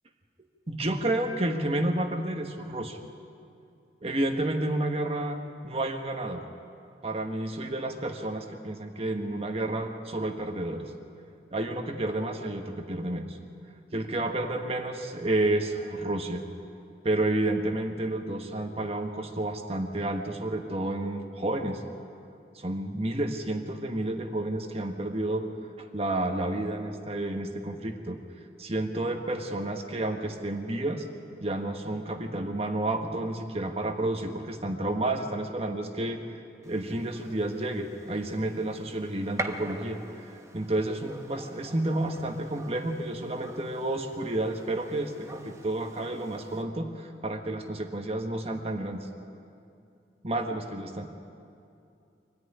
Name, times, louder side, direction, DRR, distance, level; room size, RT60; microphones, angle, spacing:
voice 1, 0.7-3.0 4.0-6.4 7.0-10.9 11.5-13.4 13.9-16.4 17.0-21.8 22.5-25.4 25.8-28.2 28.6-31.1 31.4-36.2 36.6-49.1 50.2-51.1, right 1 dB, 35° right, 4 dB, 1.3 m, -30 dB
Gunshot gunfire, 36.6-46.6, right 2 dB, 15° right, 1.2 m, -44 dB
24.5 x 14.0 x 10.0 m, 2.6 s
head